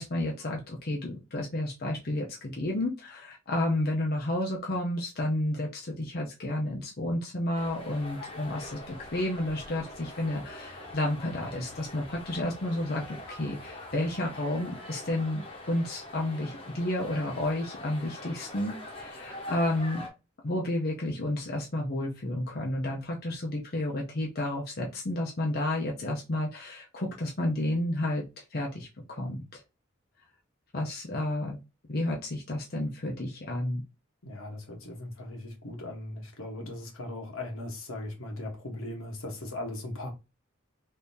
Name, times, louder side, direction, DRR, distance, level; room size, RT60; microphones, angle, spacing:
voice 1, 0.0-20.0 20.4-29.6 30.7-31.6 31.9-33.8, left 1 dB, 50° left, 0.7 m, -31 dB
sound 1, 7.5-20.1, left 1 dB, 25° left, 1.0 m, -44 dB
voice 2, 34.2-40.1, left 1 dB, 80° left, 1.2 m, -38 dB
3.6 x 2.8 x 2.7 m
head